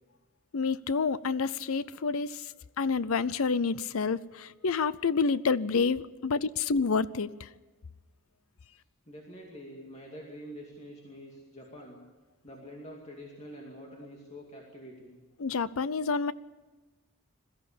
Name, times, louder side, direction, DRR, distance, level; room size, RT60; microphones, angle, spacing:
voice 1, 0.5-7.5 15.4-16.3, left 5 dB, 70° left, 18 dB, 0.6 m, -29 dB
voice 2, 9.1-12.0 12.4-15.2, equal, 30° left, -1 dB, 2.5 m, -46 dB
21.5 x 14.5 x 8.6 m, 1.2 s
head